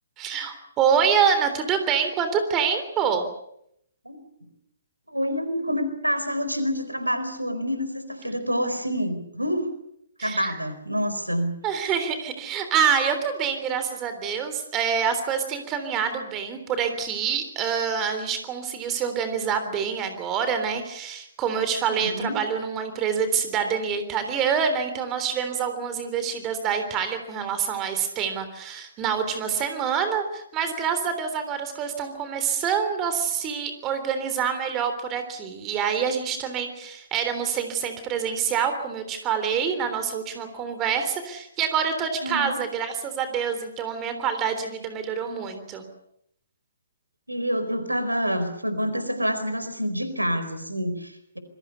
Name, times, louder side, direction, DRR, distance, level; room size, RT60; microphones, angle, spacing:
voice 1, 0.2-3.3 10.2-10.5 11.6-45.8, right 7 dB, 20° right, 9 dB, 3.5 m, -26 dB
voice 2, 5.1-9.7 10.2-11.5 21.9-22.4 42.2-42.6 47.3-51.4, equal, 85° right, 10 dB, 4.5 m, -27 dB
27.5 x 22.0 x 7.0 m, 0.75 s
figure-of-eight pair, 130°, 0 cm